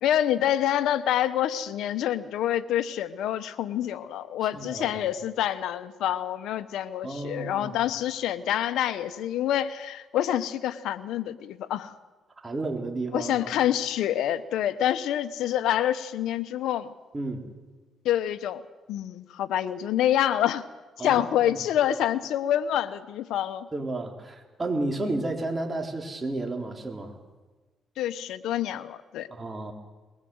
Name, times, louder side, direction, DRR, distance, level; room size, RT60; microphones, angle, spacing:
voice 1, 0.0-11.9 13.1-16.9 18.0-18.6 18.9-20.6 21.0-23.7 25.0-25.1 28.0-29.3, left 11 dB, 85° left, 13 dB, 0.9 m, -27 dB
voice 2, 4.5-5.0 7.0-7.8 12.4-13.3 17.1-17.4 21.0-21.5 23.7-27.2 29.3-29.7, right 2 dB, 25° right, 2 dB, 4.0 m, -32 dB
22.0 x 20.0 x 7.9 m, 1.2 s
cardioid pair, 90°, 0 cm